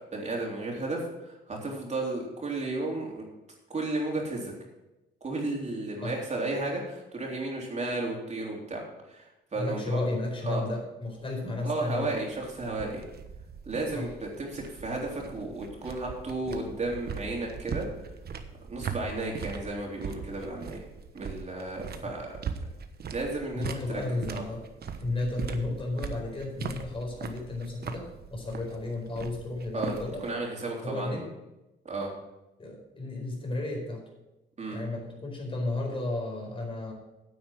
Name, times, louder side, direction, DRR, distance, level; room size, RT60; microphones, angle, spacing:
voice 1, 0.1-3.2 3.7-4.5 5.2-8.8 9.1-10.0 10.4-10.6 11.6-13.0 13.6-17.8 18.7-20.8 21.1-22.3 23.1-24.4 29.7-31.2 31.8-32.1 34.6-34.8, right 2 dB, 35° right, -1 dB, 3.5 m, -33 dB
voice 2, 9.5-12.1 13.9-14.1 22.0-22.1 23.5-24.6 25.0-30.2 30.8-31.2 32.6-34.0 34.7-36.9, left 2 dB, 25° left, 1 dB, 4.5 m, -33 dB
sound 1, 11.0-30.3, right 6 dB, 55° right, 1.2 m, -40 dB
9.6 x 8.5 x 6.2 m, 0.98 s
cardioid pair, 90°, 20 cm